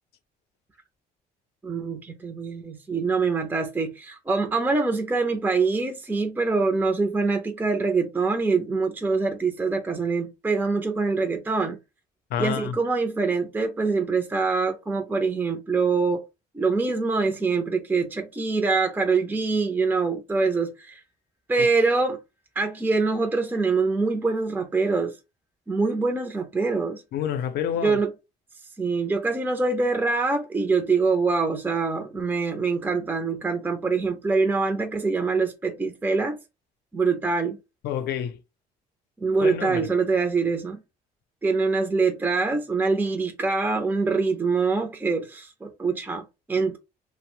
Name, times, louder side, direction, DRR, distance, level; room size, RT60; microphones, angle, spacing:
voice 1, 1.6-11.8 12.4-16.2 16.5-21.0 21.5-22.2 22.6-25.1 25.7-27.0 27.8-28.1 28.8-36.4 36.9-37.6 39.2-40.8 41.4-46.8, right 4 dB, 10° right, 0.4 m, -24 dB
voice 2, 12.3-12.8 27.1-28.0 37.8-38.4 39.4-39.9, left 9 dB, 70° left, 0.5 m, -28 dB
2.7 x 2.0 x 3.0 m
cardioid pair, 110°, 17 cm